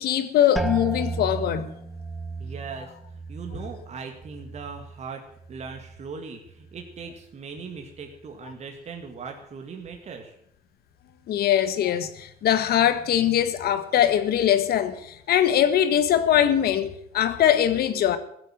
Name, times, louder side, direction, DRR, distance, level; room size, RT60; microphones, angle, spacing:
voice 1, 0.0-1.7 11.3-18.2, left 10 dB, 65° left, 1.6 m, -22 dB
sound 1, 0.6-6.2 6.5-7.2 7.8-8.2, right 3 dB, ahead, 1.1 m, -35 dB
voice 2, 2.4-5.2 5.5-10.4, right 5 dB, 40° right, 2.1 m, -39 dB
16.0 x 8.1 x 9.0 m
cardioid pair, 110°, 17 cm